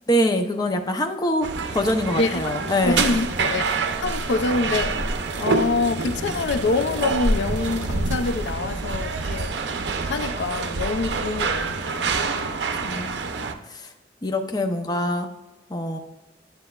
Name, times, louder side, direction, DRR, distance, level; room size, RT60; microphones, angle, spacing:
voice 1, 0.1-1.5 1.7-3.1 12.8-13.1 13.7-13.9 14.2-15.3 15.7-16.0, equal, 20° left, 0.6 m, -24 dB
sound 1, 1.4-13.5, right 4 dB, 75° right, 0.6 m, -27 dB
voice 2, 2.2-2.6 2.8-3.6 4.0-5.0 5.4-9.5 10.1-12.5 12.8-13.1, left 3 dB, 80° left, 0.4 m, -26 dB
sound 2, 2.8-8.5, equal, 45° right, 1.2 m, -32 dB
9.7 x 8.0 x 2.3 m
head